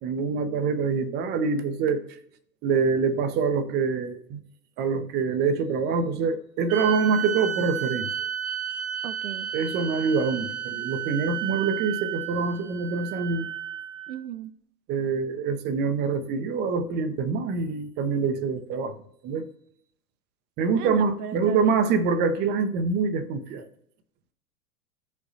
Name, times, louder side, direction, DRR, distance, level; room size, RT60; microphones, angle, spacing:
voice 1, 0.0-2.0 2.6-4.4 4.8-8.1 9.5-13.5 14.9-19.0 19.2-19.5 20.6-23.7, right 5 dB, 20° right, 0.5 m, -25 dB
sound 1, 6.7-14.2, right 11 dB, 55° right, 1.0 m, -32 dB
voice 2, 9.0-9.5 14.1-14.5 20.8-21.9, right 10 dB, 70° right, 0.6 m, -36 dB
14.5 x 5.0 x 2.7 m
figure-of-eight pair, 95°, 47 cm